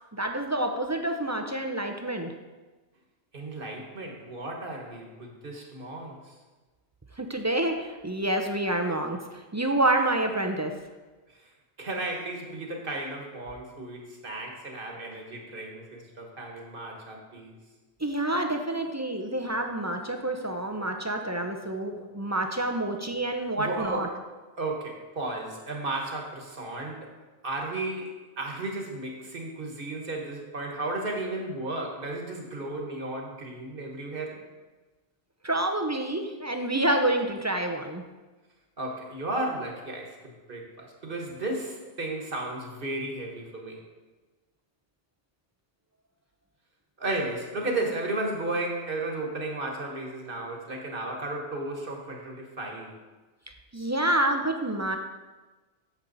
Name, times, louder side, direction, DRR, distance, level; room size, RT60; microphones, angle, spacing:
voice 1, 0.1-2.3 7.2-10.7 18.0-24.1 35.4-38.0 53.7-55.0, right 1 dB, 20° right, 4 dB, 0.4 m, -28 dB
voice 2, 3.3-6.3 11.8-17.6 23.6-24.1 24.6-27.1 27.4-34.4 38.8-43.8 47.0-52.9, right 2 dB, 50° right, 1 dB, 1.5 m, -34 dB
8.6 x 7.3 x 4.0 m, 1.2 s
omnidirectional pair, 1.2 m